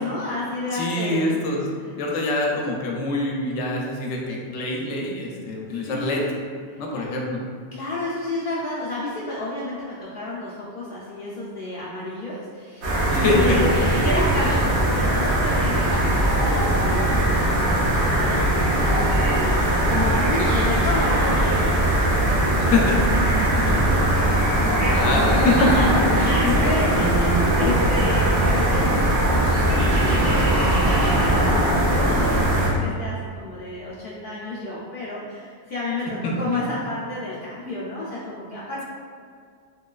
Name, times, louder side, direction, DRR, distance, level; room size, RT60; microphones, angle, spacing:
voice 1, 0.0-1.2 1.8-2.2 5.7-6.3 6.7-7.0 7.7-30.4 30.8-31.6 31.8-38.8, left 2 dB, 60° left, -9 dB, 0.6 m, -31 dB
voice 2, 0.7-1.6 2.0-6.2 6.8-7.4 13.2-13.9 20.4-20.9 22.6-23.8 25.0-25.7 26.2-26.5 26.9-27.7 36.2-36.3, left 2 dB, 85° left, -1 dB, 0.9 m, -25 dB
sound 1, 12.8-32.7, right 1 dB, 75° right, 1.1 m, -20 dB
3.0 x 2.9 x 2.3 m, 2.1 s
omnidirectional pair, 1.2 m